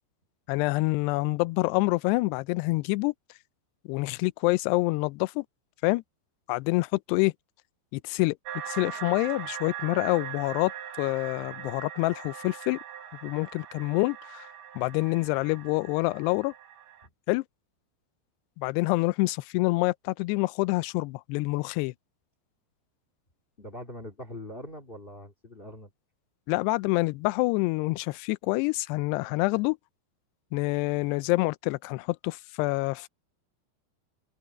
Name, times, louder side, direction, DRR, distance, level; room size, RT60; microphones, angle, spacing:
voice 1, 0.5-3.1 3.9-5.5 5.8-6.0 6.5-7.3 7.9-8.4 8.7-10.7 11.0-12.8 13.2-14.5 14.8-16.5 17.3-17.4 18.6-21.9 26.5-29.8 30.5-33.1, left 23 dB, 80° left, 2.5 m, -27 dB
sound 1, 8.5-17.1, right 9 dB, 90° right, 4.6 m, -41 dB
voice 2, 23.6-25.9, left 1 dB, 40° left, 0.7 m, -42 dB
omnidirectional pair, 5.1 m